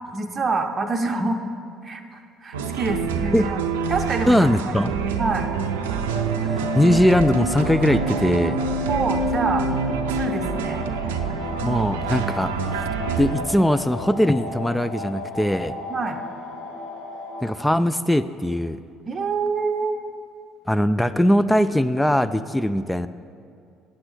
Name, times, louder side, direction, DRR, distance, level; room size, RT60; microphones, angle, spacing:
voice 1, 0.1-1.4 1.8-3.6 3.9-4.8 5.2-5.5 8.9-9.7 10.2-10.9 15.9-16.2 19.1-20.0, right 3 dB, 35° right, 3 dB, 0.7 m, -26 dB
sound 1, 2.5-13.4, right 5 dB, 75° right, 0.5 m, -26 dB
voice 2, 4.3-5.0 6.4-8.6 11.6-12.7 13.2-15.7 17.4-18.8 20.7-23.1, left 1 dB, 5° left, 12 dB, 0.3 m, -20 dB
sound 2, 6.1-17.4, left 2 dB, 65° left, 1.2 m, -34 dB
8.7 x 7.8 x 6.4 m, 2.4 s
hypercardioid pair, 55°, 0 cm